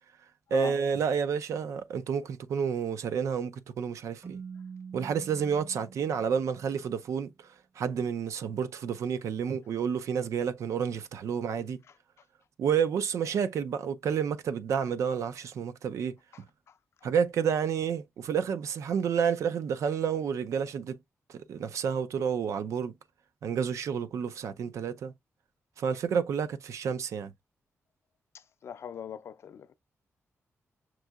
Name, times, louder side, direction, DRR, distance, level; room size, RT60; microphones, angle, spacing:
voice 1, 0.5-4.4 4.9-7.5 7.8-11.8 12.6-16.1 17.0-21.0 21.3-22.9 23.4-25.1 25.8-27.3, right 7 dB, 75° right, 0.4 m, -30 dB
Keyboard (musical), 4.2-7.0, right 6 dB, 40° right, 0.7 m, -45 dB
voice 2, 28.6-29.7, left 7 dB, 60° left, 0.4 m, -37 dB
6.0 x 2.7 x 2.3 m
wide cardioid pair, 125°, 5 cm